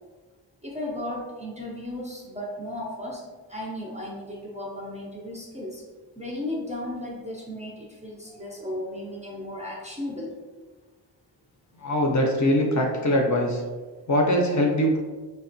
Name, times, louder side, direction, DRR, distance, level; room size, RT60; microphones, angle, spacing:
voice 1, 0.6-3.2 3.5-5.8 6.2-10.3, left 1 dB, 15° right, -4 dB, 0.4 m, -35 dB
voice 2, 11.8-13.6 14.1-15.0, equal, 45° left, 0 dB, 0.4 m, -22 dB
2.8 x 2.1 x 2.5 m, 1.3 s
wide cardioid pair, 105°, 44 cm